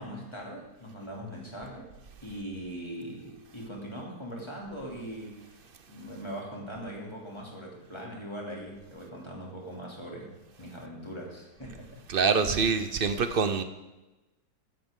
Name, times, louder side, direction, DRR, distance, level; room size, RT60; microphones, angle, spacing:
voice 1, 0.0-1.9 2.2-5.6 5.9-10.3 10.6-12.0, equal, 15° left, -2 dB, 3.0 m, -40 dB
voice 2, 12.1-13.6, right 5 dB, 55° right, 10 dB, 0.6 m, -25 dB
15.5 x 11.5 x 3.8 m, 1.1 s
omnidirectional pair, 1.8 m